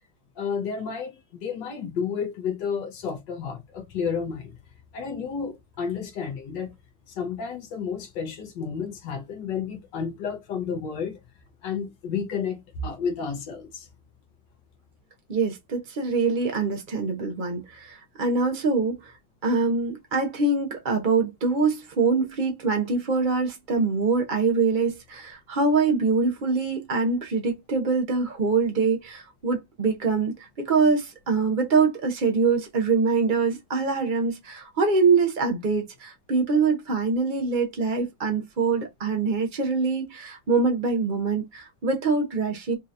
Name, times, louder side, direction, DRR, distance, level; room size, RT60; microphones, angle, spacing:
voice 1, 0.4-4.6 4.9-6.7 7.1-11.2 11.6-13.9, left 6 dB, 70° left, 1.5 m, -31 dB
voice 2, 15.3-19.1 19.4-42.7, right 4 dB, 75° right, 0.4 m, -24 dB
5.4 x 2.8 x 2.5 m
omnidirectional pair, 2.1 m